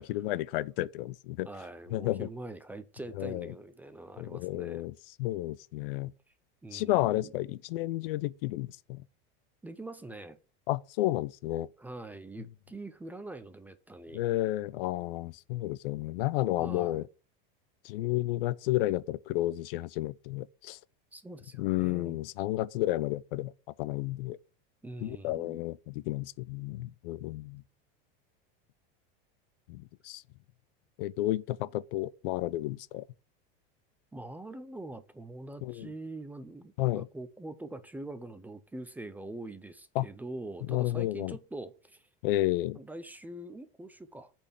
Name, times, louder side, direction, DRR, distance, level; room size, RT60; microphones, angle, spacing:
voice 1, 0.0-1.5 1.9-2.3 3.2-3.5 4.2-4.9 5.2-6.1 6.7-9.0 10.7-11.7 14.1-17.0 17.8-20.8 21.6-23.5 23.8-24.4 25.0-27.6 29.7-30.2 31.0-33.0 35.6-35.9 36.8-37.1 40.0-40.1 40.7-41.4 42.2-42.8, left 16 dB, 75° left, 0.6 m, -31 dB
voice 2, 1.5-4.9 6.6-7.3 9.6-10.4 11.8-14.2 16.6-17.1 21.1-22.2 24.8-25.6 34.1-42.1 42.7-44.3, right 2 dB, 5° right, 0.5 m, -44 dB
8.5 x 4.4 x 7.3 m
supercardioid pair, 150°, 29 cm